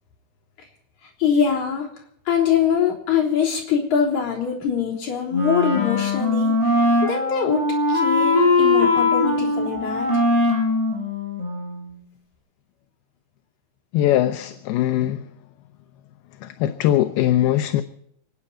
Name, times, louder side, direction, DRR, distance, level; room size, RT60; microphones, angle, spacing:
voice 1, 1.2-1.9 2.3-10.1, left 7 dB, 50° left, -3 dB, 4.7 m, -23 dB
Wind instrument woodwind instrument, 5.3-11.9, left 2 dB, 5° left, 6.0 m, -21 dB
voice 2, 13.9-15.3 16.4-17.8, left 12 dB, 80° left, 8 dB, 2.6 m, -21 dB
29.0 x 9.7 x 4.3 m, 0.74 s
omnidirectional pair, 4.6 m